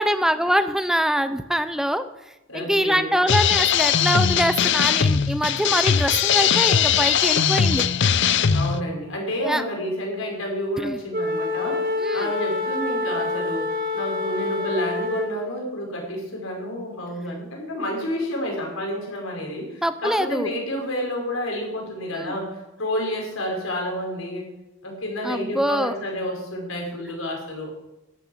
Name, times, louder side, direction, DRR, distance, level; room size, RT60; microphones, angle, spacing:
voice 1, 0.0-2.1 2.5-7.8 9.4-9.6 10.8-11.0 12.0-12.3 19.8-20.5 22.1-22.3 25.2-25.9, equal, ahead, 11 dB, 0.6 m, -24 dB
voice 2, 2.5-3.1 8.5-24.5 24.8-27.7, equal, 90° left, 1 dB, 5.1 m, -30 dB
sound 1, 3.3-8.8, left 7 dB, 60° left, 0.6 m, -20 dB
Wind instrument woodwind instrument, 11.1-15.5, left 3 dB, 45° right, 2.0 m, -27 dB
12.0 x 10.0 x 8.7 m, 0.96 s
head